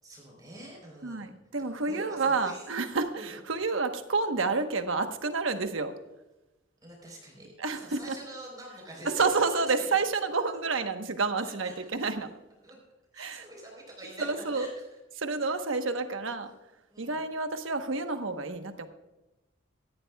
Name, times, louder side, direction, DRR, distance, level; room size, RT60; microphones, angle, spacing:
voice 1, 0.0-1.3 1.6-2.7 3.2-3.4 6.8-9.9 11.4-11.9 12.6-12.8 13.1-14.9 15.8-15.9 16.9-17.2, right 1 dB, 20° right, -1 dB, 3.9 m, -46 dB
voice 2, 1.0-5.9 7.6-8.2 9.0-12.3 13.2-13.4 14.2-14.7 15.2-16.5 17.0-18.9, right 4 dB, 75° right, 7 dB, 1.1 m, -29 dB
18.0 x 14.0 x 2.3 m, 1.0 s
head